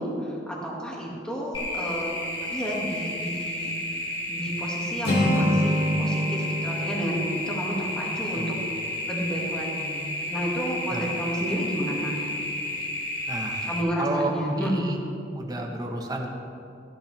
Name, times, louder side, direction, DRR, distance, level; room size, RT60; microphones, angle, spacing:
voice 1, 0.0-2.1 2.5-3.7 4.3-8.5 9.1-12.3 13.7-14.9, equal, 5° left, -4 dB, 2.1 m, -30 dB
sound 1, 1.5-13.8, left 1 dB, 25° left, 1.7 m, -32 dB
Acoustic guitar, 5.0-9.0, equal, 60° left, 2.3 m, -27 dB
voice 2, 13.3-13.7 14.0-15.0 15.3-16.3, right 1 dB, 20° right, 1 dB, 1.1 m, -31 dB
15.5 x 12.0 x 3.4 m, 2.7 s
head